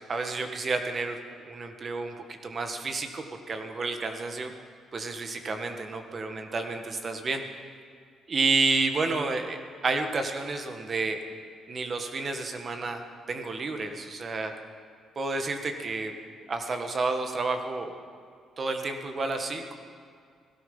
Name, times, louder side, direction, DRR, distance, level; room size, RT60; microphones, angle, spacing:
voice 1, 0.1-1.2 1.4-2.1 2.4-4.5 4.9-7.4 8.3-9.6 9.8-11.2 11.7-13.0 13.3-14.5 15.1-16.1 16.5-17.9 18.6-19.7, right 3 dB, 40° right, 6 dB, 1.6 m, -30 dB
17.5 x 12.5 x 5.5 m, 2.3 s
cardioid pair, 90°, 0 cm